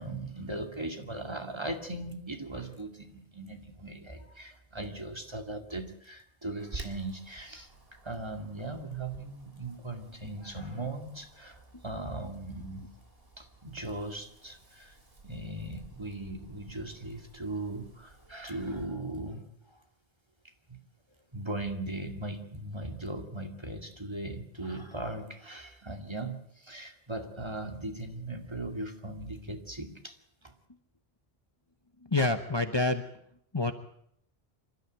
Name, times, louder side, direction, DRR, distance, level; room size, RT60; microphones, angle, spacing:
voice 1, 0.0-7.7 8.0-12.9 13.4-15.0 15.2-19.5 20.7-20.8 21.3-30.2 30.4-30.5, right 2 dB, 25° right, 5 dB, 2.5 m, -38 dB
Wind, 6.6-18.9, right 2 dB, 65° right, 3.6 m, -51 dB
voice 2, 32.1-33.0 33.5-33.7, left 2 dB, 25° left, 8 dB, 1.1 m, -27 dB
27.5 x 13.0 x 9.2 m, 0.71 s
omnidirectional pair, 1.0 m